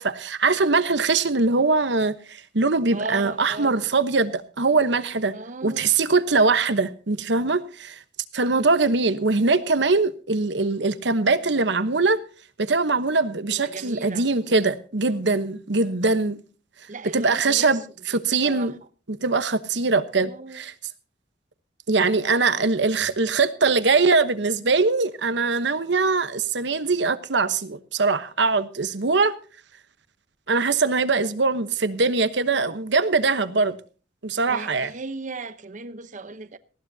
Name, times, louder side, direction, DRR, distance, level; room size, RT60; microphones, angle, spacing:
voice 1, 0.0-5.4 5.6-8.0 8.3-12.2 12.6-16.4 17.1-17.8 18.1-18.7 19.1-20.7 21.9-29.3 30.5-33.8 34.2-34.9, right 3 dB, 70° right, 1.1 m, -22 dB
voice 2, 2.9-3.8 5.2-5.9 13.5-14.3 16.9-17.8 18.1-18.8 20.0-20.6 34.5-36.6, right 3 dB, 45° right, 0.9 m, -37 dB
19.0 x 15.5 x 2.8 m
head